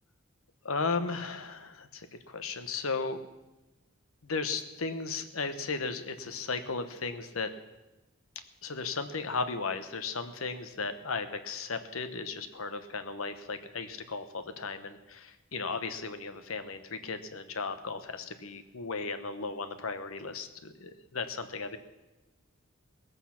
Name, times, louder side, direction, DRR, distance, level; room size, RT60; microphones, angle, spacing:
voice 1, 0.6-3.2 4.2-7.5 8.6-21.8, left 4 dB, 80° left, 10 dB, 1.1 m, -35 dB
19.0 x 8.1 x 5.9 m, 1.1 s
head